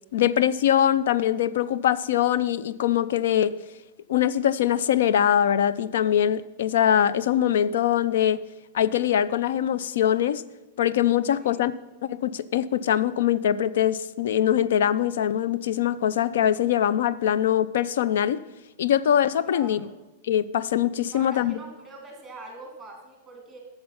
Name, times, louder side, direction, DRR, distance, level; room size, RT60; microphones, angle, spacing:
voice 1, 0.1-3.5 4.1-8.4 8.7-10.4 10.8-11.7 12.0-18.4 18.8-19.9 20.2-21.6, left 10 dB, 70° left, 17 dB, 0.4 m, -23 dB
voice 2, 19.4-19.9 21.1-23.6, right 2 dB, 5° right, 1 dB, 2.1 m, -43 dB
8.7 x 6.6 x 5.6 m, 1.0 s
supercardioid pair, 165°, 0 cm